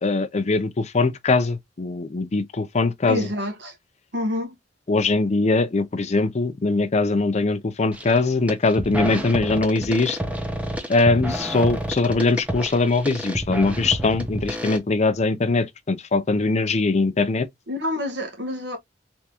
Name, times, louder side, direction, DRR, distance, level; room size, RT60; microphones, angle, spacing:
voice 1, 0.0-3.3 4.9-10.2 10.9-17.5, left 3 dB, 35° left, 0.5 m, -21 dB
voice 2, 3.1-3.8 4.1-4.5 17.7-18.8, left 1 dB, 65° right, 1.4 m, -27 dB
sound 1, 7.9-8.2 8.5-14.8, right 1 dB, 5° right, 0.8 m, -29 dB
3.6 x 3.4 x 2.9 m
head